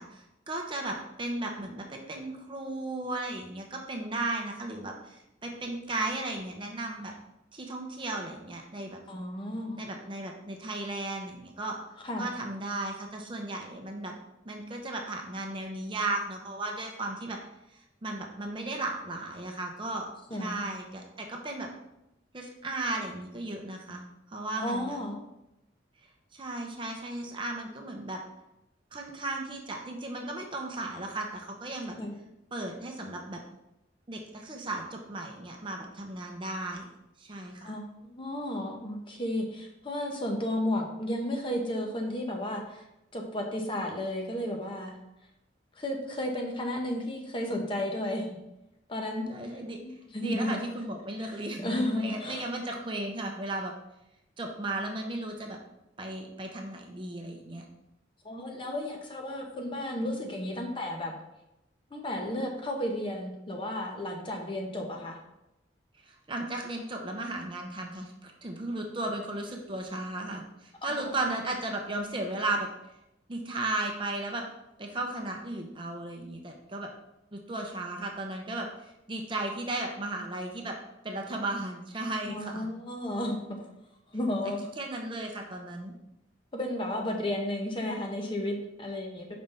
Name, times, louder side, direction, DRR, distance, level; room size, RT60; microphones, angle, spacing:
voice 1, 0.0-7.1 7.5-9.0 9.8-11.8 12.2-14.1 14.4-17.4 17.7-20.1 20.4-21.7 22.3-25.0 26.3-28.2 28.9-32.0 32.5-33.4 34.1-36.9 37.2-37.8 49.3-49.8 50.2-53.7 54.4-55.6 56.0-57.6 66.0-72.7 73.3-74.4 74.8-76.9 77.3-80.8 81.0-82.7 84.4-85.9, right 2 dB, 25° right, 2 dB, 0.7 m, -35 dB
voice 2, 9.1-9.8 12.0-12.3 20.3-20.6 24.6-25.2 32.0-32.1 37.6-42.9 43.1-45.0 45.8-48.4 48.9-49.3 49.8-50.6 51.2-52.5 58.2-61.1 61.9-65.2 71.0-71.4 82.3-83.6 84.1-84.6 86.5-89.3, left 1 dB, 25° left, 2 dB, 0.8 m, -33 dB
5.2 x 3.4 x 5.5 m, 0.88 s
head